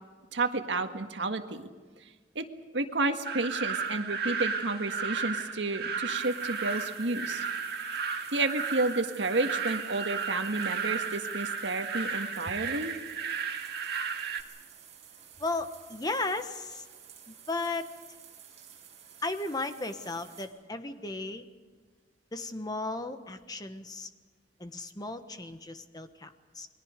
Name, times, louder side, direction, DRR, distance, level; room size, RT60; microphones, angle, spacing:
voice 1, 0.3-1.7 2.4-2.5 2.7-7.4 8.3-13.0, right 2 dB, 85° right, 6 dB, 1.7 m, -31 dB
sound 1, 3.2-14.4, right 5 dB, 60° right, 2.0 m, -34 dB
sound 2, 6.1-20.5, right 8 dB, 40° right, 6.8 m, -52 dB
voice 2, 15.4-16.8 17.3-17.9 19.2-21.4 22.3-24.1 24.6-26.7, left 2 dB, 20° left, 8 dB, 1.3 m, -35 dB
29.5 x 22.0 x 5.2 m, 1.4 s
head